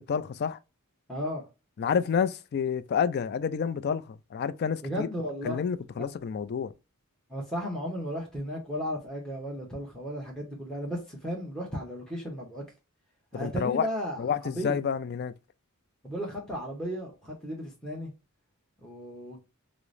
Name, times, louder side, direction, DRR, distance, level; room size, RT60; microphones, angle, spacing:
voice 1, 0.1-0.6 1.8-5.1 5.4-6.7 13.3-13.9 14.2-15.3, left 7 dB, 45° left, 0.3 m, -29 dB
voice 2, 1.1-1.4 4.8-5.6 6.0-6.1 7.3-12.6 13.3-14.2 14.4-14.7 16.0-18.1 18.8-19.4, equal, 5° left, 0.8 m, -34 dB
4.7 x 2.0 x 2.5 m
head